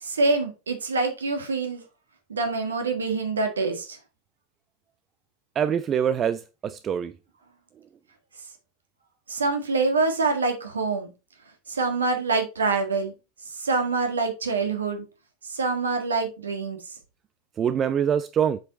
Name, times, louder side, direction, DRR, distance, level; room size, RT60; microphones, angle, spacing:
voice 1, 0.0-1.8 2.3-4.0 9.3-11.1 11.7-13.1 13.6-15.0 15.5-16.8, right 3 dB, 70° right, 1.7 m, -25 dB
voice 2, 5.6-7.1 17.6-18.6, right 8 dB, 30° right, 0.4 m, -24 dB
7.8 x 5.0 x 4.2 m
figure-of-eight pair, 85°, 0 cm